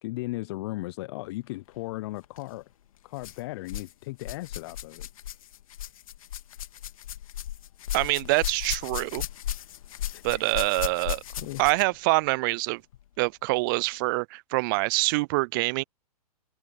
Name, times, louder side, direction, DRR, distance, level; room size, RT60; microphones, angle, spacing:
voice 1, 0.0-2.7 3.0-5.1 10.1-10.6 11.4-11.6, left 20 dB, 40° left, 0.5 m, -36 dB
sound 1, 2.2-2.4 3.2-3.9 4.2-12.0 12.9-13.0 13.8-13.9, left 12 dB, 60° left, 1.9 m, -36 dB
voice 2, 7.9-9.2 10.2-11.2 11.6-12.8 13.2-15.8, right 25 dB, 35° right, 0.4 m, -25 dB
hypercardioid pair, 115°, 20 cm